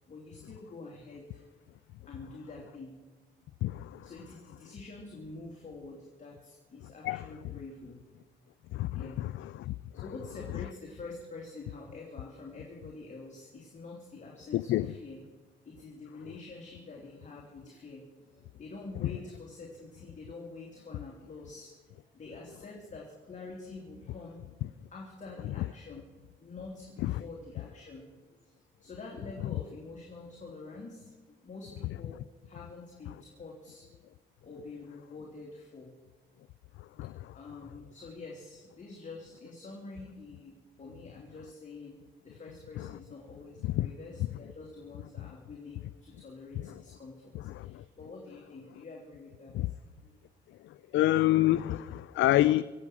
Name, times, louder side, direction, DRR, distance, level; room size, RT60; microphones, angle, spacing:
voice 1, 0.1-1.4 2.1-3.0 4.0-8.0 8.9-9.2 9.9-15.2 15.6-21.7 22.1-26.0 26.4-28.1 28.4-28.5 28.8-31.1 31.4-34.0 34.4-35.9 37.3-42.0 42.2-49.7 50.0-50.2, left 3 dB, 40° left, 3.1 m, -47 dB
voice 2, 3.6-4.0 7.0-7.2 8.7-9.7 14.5-14.9 27.0-27.1 37.0-37.1 43.6-43.9 47.3-47.8 49.5-49.7 50.9-52.6, left 15 dB, 75° left, 0.4 m, -27 dB
25.0 x 8.4 x 6.2 m
cardioid pair, 90°, 20 cm